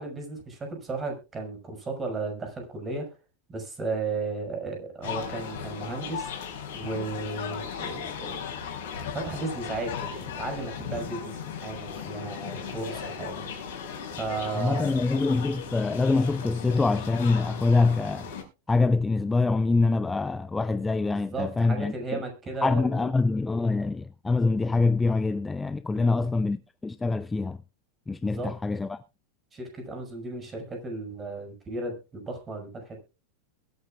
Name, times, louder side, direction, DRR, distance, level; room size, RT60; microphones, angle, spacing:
voice 1, 0.0-3.1 3.5-6.3 6.7-8.5 9.1-13.4 14.2-15.0 21.1-23.1 25.9-26.2 28.1-28.5 29.5-33.0, right 3 dB, 20° right, 5.8 m, -35 dB
sound 1, 5.0-18.4, left 7 dB, 55° left, 5.3 m, -37 dB
voice 2, 14.5-18.3 18.7-22.2 22.6-27.6 28.1-29.0, left 3 dB, 10° left, 0.6 m, -25 dB
22.5 x 9.1 x 2.4 m
figure-of-eight pair, 90°, 0 cm